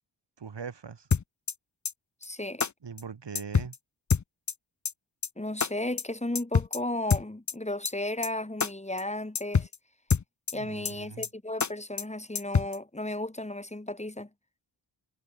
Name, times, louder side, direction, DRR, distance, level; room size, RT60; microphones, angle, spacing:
voice 1, 0.4-1.1 2.8-3.8 10.5-11.3, right 6 dB, 70° right, 4.6 m, -41 dB
sound 1, 1.1-1.5 1.8-1.9 2.2-2.3 2.6-2.7 3.0-3.1 3.3-3.8 4.1-4.5 4.8-4.9 5.2-5.3 5.6-5.7 6.0-6.1 6.3-6.8 7.1-7.5 7.8-7.9 8.2-8.3 8.6-8.7 9.0-9.1 9.3-9.8 10.1-10.5 10.8-10.9 11.2-11.3 11.6-11.7 12.0-12.1 12.3-12.8, left 6 dB, 40° left, 1.0 m, -26 dB
voice 2, 2.2-2.6 5.4-9.7 10.5-14.3, left 1 dB, 15° left, 4.5 m, -34 dB
wide cardioid pair, 90°, 44 cm